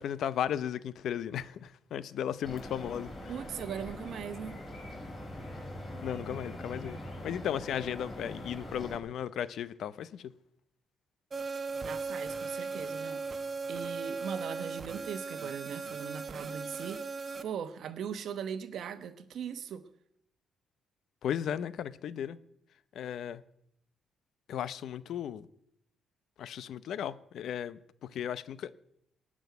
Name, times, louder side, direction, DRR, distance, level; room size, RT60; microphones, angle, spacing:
voice 1, 0.0-3.1 6.0-10.3 21.2-22.4 22.9-23.4 24.5-25.5 26.4-27.8 28.1-28.7, left 9 dB, 70° left, 0.6 m, -35 dB
sound 1, 2.4-9.0, left 1 dB, 30° left, 4.4 m, -43 dB
voice 2, 3.3-4.6 11.8-17.0 17.4-19.8, right 8 dB, 65° right, 1.0 m, -40 dB
sound 2, 11.3-17.4, right 4 dB, 40° right, 0.9 m, -37 dB
18.0 x 6.3 x 9.3 m
cardioid pair, 90°, 0 cm